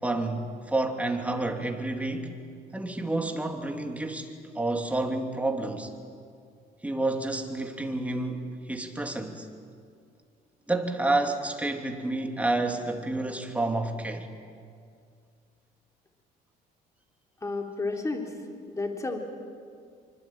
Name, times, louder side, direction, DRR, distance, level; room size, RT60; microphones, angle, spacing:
voice 1, 0.0-2.4 2.7-5.9 6.8-9.5 10.7-14.3, right 2 dB, 10° right, 2.9 m, -29 dB
voice 2, 17.4-18.3 18.7-19.2, left 3 dB, 20° left, 3.3 m, -31 dB
26.0 x 24.5 x 8.9 m
cardioid pair, 110°, 17 cm